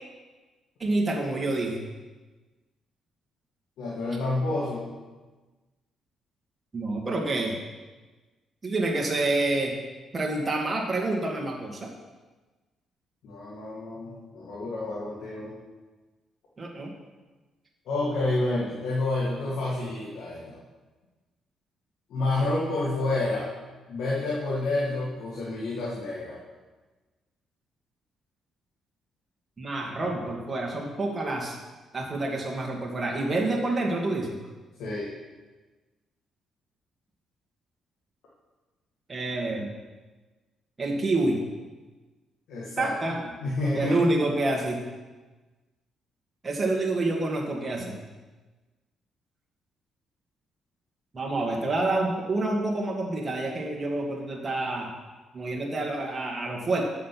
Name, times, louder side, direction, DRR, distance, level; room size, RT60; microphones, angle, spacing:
voice 1, 0.8-1.8 6.7-7.6 8.6-9.8 10.1-11.9 16.6-16.9 29.6-31.6 31.9-34.3 39.1-39.7 40.8-41.4 42.8-43.2 43.7-44.8 46.4-48.0 51.1-54.9 55.3-56.8, right 2 dB, 25° right, -1 dB, 2.0 m, -28 dB
voice 2, 3.8-4.9 13.2-15.6 17.9-20.6 22.1-23.5 23.9-26.4 34.8-35.1 42.5-44.2, left 2 dB, 80° left, -6 dB, 2.0 m, -29 dB
7.5 x 6.7 x 6.0 m, 1.2 s
cardioid pair, 90°, 0 cm